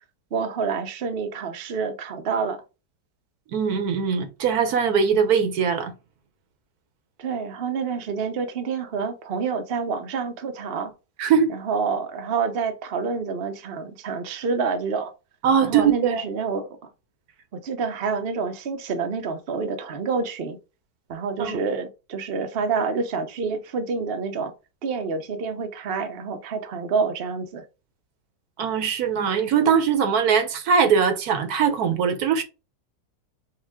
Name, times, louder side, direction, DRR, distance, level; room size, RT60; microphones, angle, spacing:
voice 1, 0.3-2.6 7.2-10.9 11.5-15.1 15.6-16.7 17.5-20.6 21.1-24.5 24.8-27.6, right 5 dB, 50° right, 0.7 m, -28 dB
voice 2, 3.5-5.9 11.2-11.5 15.4-16.2 21.4-21.6 28.6-32.4, right 6 dB, 65° right, 1.2 m, -21 dB
5.8 x 2.5 x 3.5 m
omnidirectional pair, 1.8 m